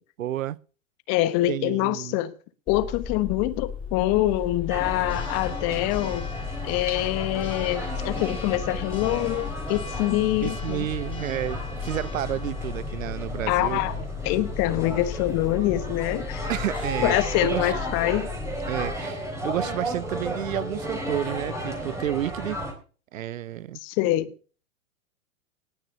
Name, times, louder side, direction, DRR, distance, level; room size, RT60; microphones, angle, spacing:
voice 1, 0.2-0.6 1.5-2.2 10.4-14.0 16.5-17.7 18.7-22.6 23.1-23.8, right 12 dB, 70° right, 0.7 m, -31 dB
voice 2, 1.1-2.3 2.7-6.3 6.6-10.9 13.5-14.0 14.2-16.5 17.0-18.3 23.8-24.3, left 15 dB, 40° left, 1.3 m, -25 dB
Church bell, 2.7-19.0, left 6 dB, 10° left, 4.0 m, -35 dB
sound 1, 4.7-22.7, right 1 dB, 5° right, 3.7 m, -34 dB
19.0 x 6.5 x 6.6 m
hypercardioid pair, 110°, 41 cm